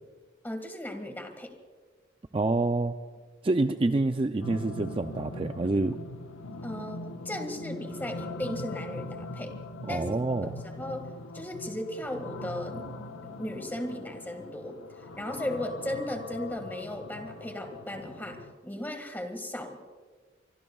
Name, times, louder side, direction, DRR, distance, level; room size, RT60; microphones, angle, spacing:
voice 1, 0.4-1.6 6.6-9.6 9.9-10.1 10.4-12.9 13.4-14.8 15.2-19.8, left 1 dB, 10° left, 5 dB, 1.8 m, -36 dB
voice 2, 2.3-2.9 3.4-6.0 9.8-10.5, right 2 dB, 25° right, 7 dB, 0.4 m, -27 dB
sound 1, 4.4-18.5, left 2 dB, 90° left, 1.0 m, -41 dB
24.5 x 24.5 x 2.4 m, 1.4 s
head